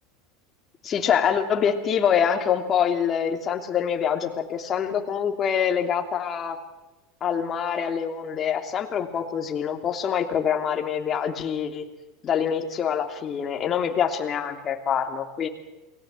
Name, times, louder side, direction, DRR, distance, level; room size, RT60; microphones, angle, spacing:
voice 1, 0.8-6.6 7.2-11.8 12.2-15.5, left 8 dB, 35° left, 4 dB, 3.0 m, -25 dB
29.0 x 19.5 x 7.7 m, 1.1 s
hypercardioid pair, 85°, 0 cm